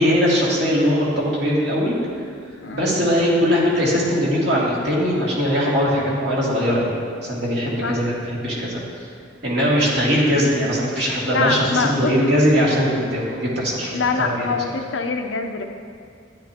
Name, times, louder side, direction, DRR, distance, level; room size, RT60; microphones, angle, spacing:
voice 1, 0.0-2.0 2.7-8.8 9.4-14.8, equal, 60° right, -6 dB, 2.5 m, -20 dB
voice 2, 2.6-3.0 7.8-8.0 11.3-12.4 13.9-15.6, left 4 dB, 85° left, 4 dB, 0.7 m, -24 dB
12.5 x 10.5 x 2.9 m, 2.3 s
head